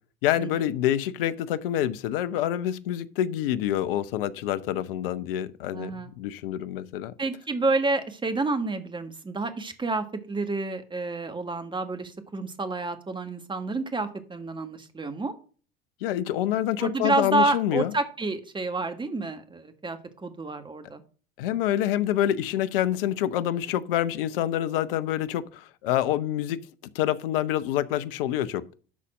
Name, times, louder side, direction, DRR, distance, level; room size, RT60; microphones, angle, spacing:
voice 1, 0.2-7.1 16.0-17.9 21.4-26.6 26.9-28.7, left 12 dB, 70° left, 0.8 m, -27 dB
voice 2, 5.7-6.1 7.2-15.3 16.8-21.0, right 3 dB, 15° right, 1.5 m, -29 dB
12.5 x 4.2 x 6.1 m
figure-of-eight pair, 70°, 29 cm